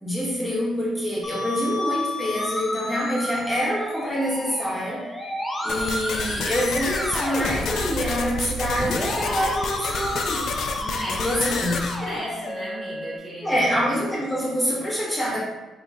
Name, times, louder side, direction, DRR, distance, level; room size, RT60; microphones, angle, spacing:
voice 1, 0.0-5.0 5.6-10.5 11.2-11.9 13.4-15.4, equal, 5° left, -7 dB, 1.3 m, -26 dB
Musical instrument, 1.2-13.2, left 1 dB, 20° left, 0.6 m, -31 dB
sound 1, 5.7-12.0, left 5 dB, 75° left, 0.3 m, -30 dB
voice 2, 10.8-13.5, right 1 dB, 30° right, -6 dB, 1.2 m, -36 dB
3.1 x 2.9 x 3.6 m, 1.2 s
cardioid pair, 90°, 0 cm